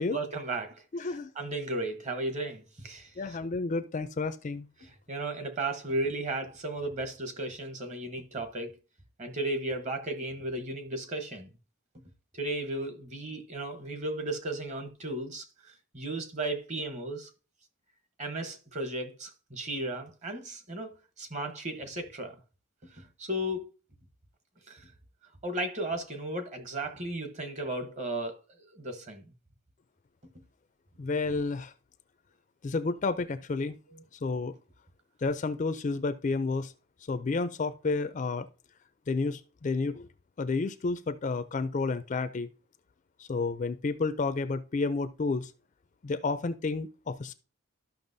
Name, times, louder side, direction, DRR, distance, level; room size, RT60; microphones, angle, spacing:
voice 1, 0.1-3.4 4.8-8.7 9.2-11.5 12.3-17.3 18.2-22.4 22.9-23.7 24.7-24.9 25.4-28.4 28.7-29.2 33.9-34.0, right 2 dB, 30° right, 1.0 m, -35 dB
voice 2, 0.9-1.3 3.2-4.7 31.0-31.7 32.6-33.8 34.2-34.5 35.2-36.7 37.1-38.5 39.1-40.1 40.4-42.5 43.3-45.5 46.0-47.3, left 3 dB, 35° left, 0.4 m, -30 dB
13.0 x 5.7 x 2.6 m
head